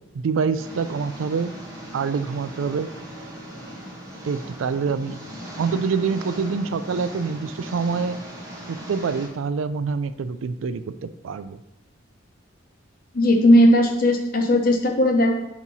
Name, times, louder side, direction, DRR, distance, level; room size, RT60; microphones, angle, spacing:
voice 1, 0.1-1.5 1.9-2.9 4.2-5.2 5.6-8.2 8.7-11.6, right 5 dB, 80° right, 13 dB, 0.4 m, -26 dB
Engine, 0.6-9.3, equal, 15° right, 1.2 m, -38 dB
voice 2, 13.1-15.4, left 1 dB, 45° left, 2 dB, 0.9 m, -17 dB
8.3 x 3.0 x 4.1 m, 0.90 s
head